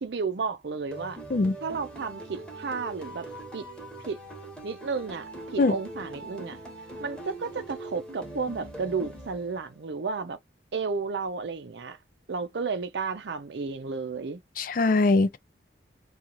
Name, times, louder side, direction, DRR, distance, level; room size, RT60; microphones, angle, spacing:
voice 1, 0.0-1.2 1.6-3.3 3.5-3.6 4.1-4.2 4.6-6.6 7.0-10.4 10.7-12.0 12.3-14.4, right 4 dB, 75° right, 0.5 m, -32 dB
sound 1, 0.9-9.8, right 2 dB, 5° left, 1.0 m, -42 dB
voice 2, 14.6-15.4, left 3 dB, 50° left, 0.4 m, -22 dB
2.9 x 2.4 x 2.4 m
head